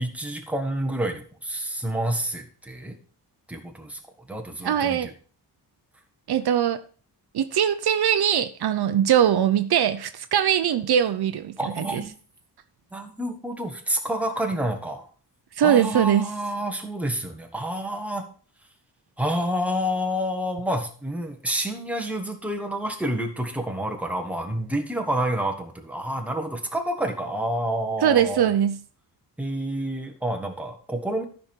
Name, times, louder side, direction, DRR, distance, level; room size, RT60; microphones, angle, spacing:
voice 1, 0.0-2.9 3.5-4.0 4.3-5.1 11.6-12.1 12.9-15.1 15.6-18.3 19.2-28.5 29.4-31.2, right 1 dB, 5° right, 3 dB, 1.4 m, -28 dB
voice 2, 4.6-5.1 6.3-6.8 7.3-12.0 15.6-16.3 28.0-28.8, right 9 dB, 65° right, 10 dB, 0.7 m, -21 dB
13.5 x 5.4 x 4.5 m, 0.42 s
wide cardioid pair, 165°, 41 cm